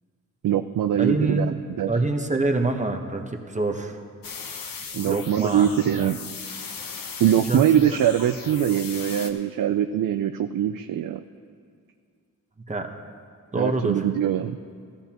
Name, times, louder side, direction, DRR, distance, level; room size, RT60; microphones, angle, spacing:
voice 1, 0.4-1.9 4.9-6.2 7.2-11.2 13.5-14.6, right 10 dB, 70° right, 9 dB, 0.5 m, -23 dB
voice 2, 1.0-1.5 1.9-4.0 5.1-5.7 7.5-7.6 7.9-8.0 12.7-12.9 13.5-13.9, right 2 dB, 20° right, 4 dB, 1.1 m, -25 dB
sound 1, 4.2-9.3, left 5 dB, 70° left, 1.0 m, -37 dB
15.0 x 14.5 x 2.9 m, 2.2 s
cardioid pair, 75°, 35 cm